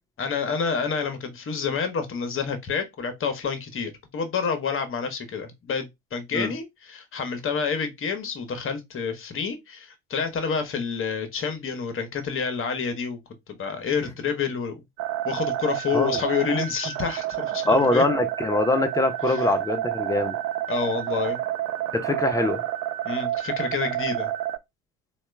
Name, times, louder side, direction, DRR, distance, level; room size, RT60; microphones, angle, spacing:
voice 1, 0.2-13.2 13.5-14.8 15.2-18.0 19.2-19.5 20.7-21.4 23.0-24.3, left 6 dB, 30° left, 1.0 m, -28 dB
sound 1, 15.0-24.6, right 13 dB, 35° right, 0.4 m, -29 dB
voice 2, 17.7-20.4 21.9-22.6, left 2 dB, 10° left, 0.7 m, -23 dB
4.1 x 2.4 x 3.2 m
figure-of-eight pair, 60°, 42 cm